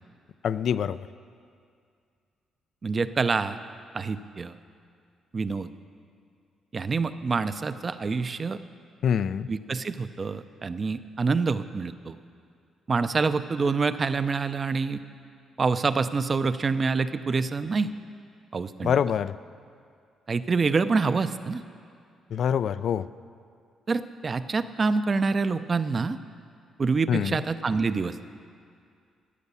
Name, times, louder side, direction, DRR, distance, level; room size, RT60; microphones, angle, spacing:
voice 1, 0.4-1.0 9.0-9.5 18.8-19.3 22.3-23.1 27.1-27.4, left 8 dB, 65° left, 15 dB, 0.4 m, -25 dB
voice 2, 2.8-3.6 3.9-4.5 5.3-5.7 6.7-8.6 9.5-12.2 12.9-15.0 15.6-17.9 18.5-19.0 20.3-21.6 23.9-26.2 26.8-28.1, right 4 dB, 35° right, 12 dB, 0.5 m, -26 dB
13.5 x 9.4 x 7.0 m, 2.3 s
cardioid pair, 90°, 0 cm